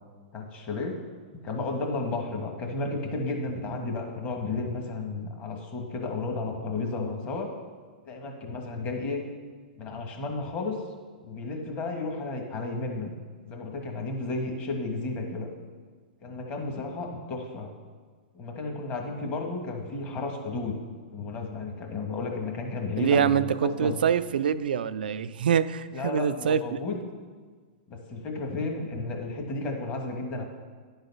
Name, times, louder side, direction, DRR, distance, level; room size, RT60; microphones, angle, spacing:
voice 1, 0.3-0.9 1.4-7.5 8.1-9.2 9.8-10.8 11.2-13.1 13.4-15.5 16.2-17.7 18.3-20.7 21.1-24.0 25.9-27.0 27.9-30.4, left 3 dB, 30° left, 2 dB, 1.4 m, -33 dB
voice 2, 23.0-26.6, right 8 dB, 80° right, 13 dB, 0.4 m, -25 dB
10.5 x 4.0 x 5.4 m, 1.5 s
hypercardioid pair, 135°, 5 cm